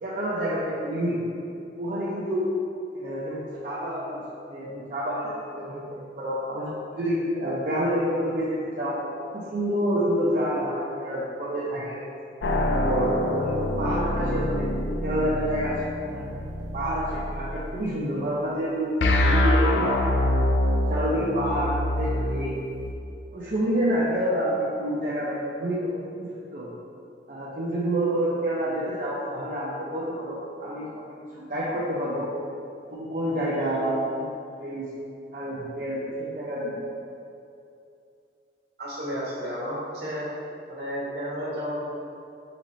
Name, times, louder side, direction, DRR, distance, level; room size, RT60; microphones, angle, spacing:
voice 1, 0.0-1.2 1.8-2.5 2.9-5.9 6.2-12.0 12.6-14.7 15.0-16.3 16.7-20.1 20.6-22.5 23.3-26.7 27.3-32.3 32.9-34.3 34.6-34.9 35.3-36.8, equal, 45° right, -7 dB, 0.5 m, -28 dB
sound 1, 12.4-17.7 19.0-22.9, left 1 dB, 85° left, 0.4 m, -25 dB
voice 2, 38.8-40.3 40.7-42.0, equal, 65° right, -6 dB, 1.3 m, -32 dB
4.1 x 3.9 x 3.1 m, 2.6 s
head